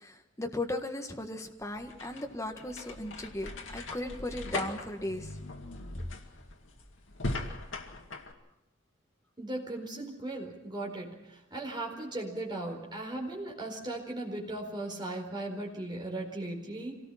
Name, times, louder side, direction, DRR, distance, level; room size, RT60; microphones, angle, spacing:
voice 1, 0.0-5.4, left 1 dB, 15° left, 3 dB, 1.6 m, -37 dB
sound 1, 1.6-8.3, left 2 dB, 75° left, 2.1 m, -39 dB
voice 2, 9.4-17.0, right 2 dB, 25° right, 0 dB, 4.6 m, -37 dB
25.5 x 18.5 x 5.8 m, 0.93 s
head